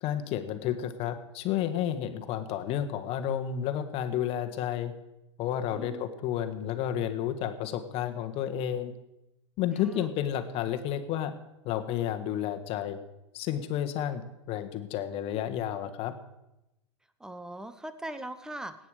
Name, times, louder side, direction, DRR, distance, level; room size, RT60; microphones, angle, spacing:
voice 1, 0.0-4.9 5.4-8.9 9.6-11.3 11.6-13.0 13.3-14.2 14.5-16.2, left 10 dB, 40° left, 7 dB, 1.4 m, -31 dB
voice 2, 5.7-6.1 9.8-10.1 17.2-18.8, right 1 dB, 5° right, 12 dB, 0.9 m, -40 dB
18.5 x 8.9 x 4.9 m, 0.92 s
hypercardioid pair, 120°, 15 cm